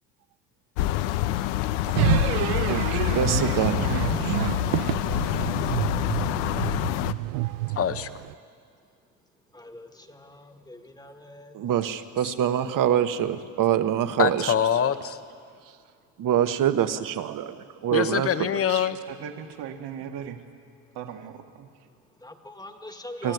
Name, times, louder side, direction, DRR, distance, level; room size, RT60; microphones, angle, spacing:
sound 1, 0.8-7.1, left 14 dB, 80° left, 0.8 m, -26 dB
sound 2, 1.9-8.3, right 20 dB, 85° right, 0.5 m, -28 dB
voice 1, 2.7-4.4 11.5-14.5 16.2-18.9 23.2-23.3, right 10 dB, 45° right, 10 dB, 1.3 m, -25 dB
voice 2, 7.8-8.1 14.2-15.2 17.9-19.0, left 9 dB, 30° left, 12 dB, 1.0 m, -24 dB
voice 3, 9.5-11.6 15.5-15.6 21.8-23.3, left 1 dB, 10° left, 6 dB, 1.7 m, -44 dB
voice 4, 19.1-20.4 21.0-21.7, right 8 dB, 65° right, 4 dB, 1.8 m, -38 dB
24.0 x 15.0 x 9.4 m, 2.2 s
supercardioid pair, 110°, 44 cm